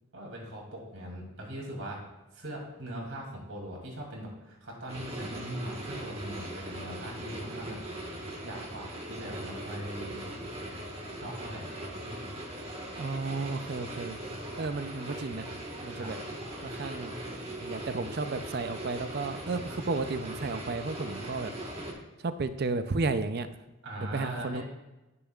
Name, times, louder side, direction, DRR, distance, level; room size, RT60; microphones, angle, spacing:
voice 1, 0.1-2.1 2.3-7.8 8.4-10.3 11.2-11.7 15.9-16.1 23.8-24.6, right 1 dB, 70° right, -2 dB, 2.9 m, -40 dB
sound 1, 4.9-21.9, right 1 dB, 30° right, 1.5 m, -40 dB
voice 2, 13.0-14.2 14.6-15.5 15.8-16.2 16.6-17.1 17.6-21.5 22.2-23.5 24.1-24.6, right 3 dB, 45° right, 10 dB, 0.5 m, -33 dB
15.0 x 6.9 x 2.4 m, 1.0 s
head